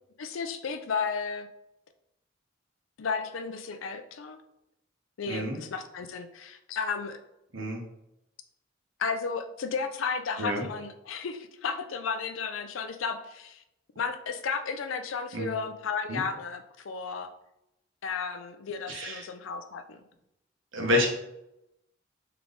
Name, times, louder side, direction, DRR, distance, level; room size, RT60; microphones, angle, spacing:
voice 1, 0.2-1.5 3.0-4.4 5.2-7.2 9.0-13.6 14.0-17.3 18.0-20.0, left 5 dB, 80° left, 8 dB, 0.5 m, -33 dB
voice 2, 5.3-5.6 7.5-7.8 10.4-10.7 15.3-15.6 16.1-16.2 18.9-19.2 20.7-21.1, left 1 dB, 75° right, 0 dB, 1.1 m, -28 dB
3.4 x 3.3 x 3.8 m, 0.84 s
head